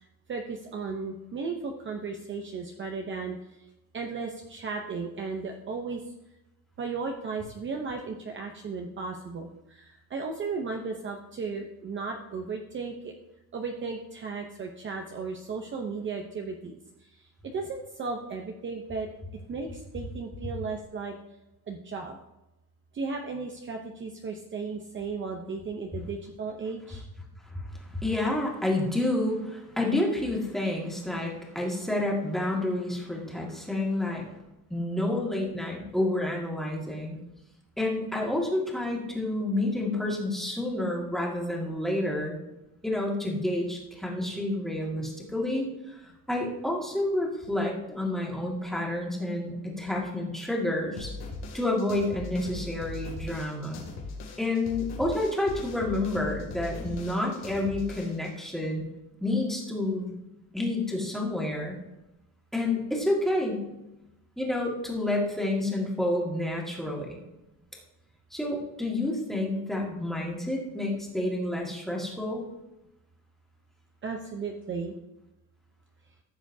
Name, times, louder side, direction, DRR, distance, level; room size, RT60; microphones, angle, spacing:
voice 1, 0.3-3.4 3.9-6.0 6.8-13.1 13.5-16.8 17.4-19.1 19.5-21.1 21.7-22.2 22.9-27.1 74.0-74.9, right 4 dB, 30° right, 2 dB, 0.7 m, -35 dB
voice 2, 27.5-34.3 34.7-37.2 37.8-42.4 42.8-46.0 46.3-51.1 51.5-53.9 54.4-58.9 59.2-60.1 60.5-61.8 62.5-63.6 64.4-67.2 68.3-72.4, left 1 dB, ahead, -3 dB, 1.9 m, -29 dB
sound 1, 51.0-58.3, left 3 dB, 85° left, 2.4 m, -40 dB
15.0 x 6.9 x 2.7 m, 0.95 s
cardioid pair, 150°, 37 cm